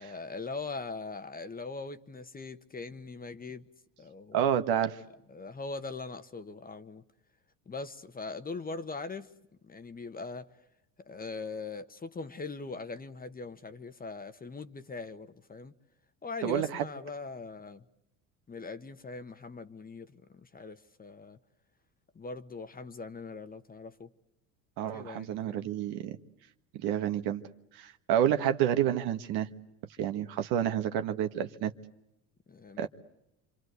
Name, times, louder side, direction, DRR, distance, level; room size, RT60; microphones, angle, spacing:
voice 1, 0.0-3.6 4.0-4.5 5.3-7.0 7.7-9.3 9.6-10.5 11.0-15.7 16.2-17.8 18.5-21.4 22.1-24.1 24.9-25.7 32.5-32.9, left 4 dB, 20° left, 1.3 m, -41 dB
voice 2, 4.3-5.0 16.4-16.9 24.8-26.2 26.7-27.4 27.7-29.5 30.0-31.7 32.8-32.9, right 10 dB, 60° right, 1.6 m, -29 dB
26.5 x 26.5 x 8.2 m
hypercardioid pair, 85°, 42 cm